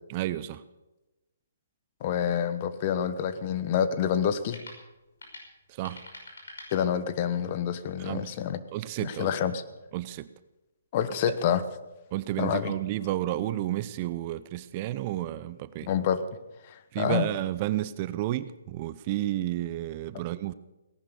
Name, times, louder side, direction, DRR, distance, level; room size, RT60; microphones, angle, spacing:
voice 1, 0.1-0.6 5.8-6.0 8.0-8.3 8.7-9.3 9.9-10.3 12.1-15.9 16.9-20.5, right 14 dB, 30° right, 15 dB, 0.6 m, -31 dB
voice 2, 2.0-4.6 6.7-8.6 9.0-9.6 10.9-11.6 12.4-12.8 15.9-16.2 16.7-17.3, left 8 dB, 35° left, 12 dB, 1.2 m, -27 dB
sound 1, 3.4-7.4, left 2 dB, 80° left, 5.8 m, -49 dB
18.0 x 11.0 x 6.9 m, 1.0 s
hypercardioid pair, 145°, 0 cm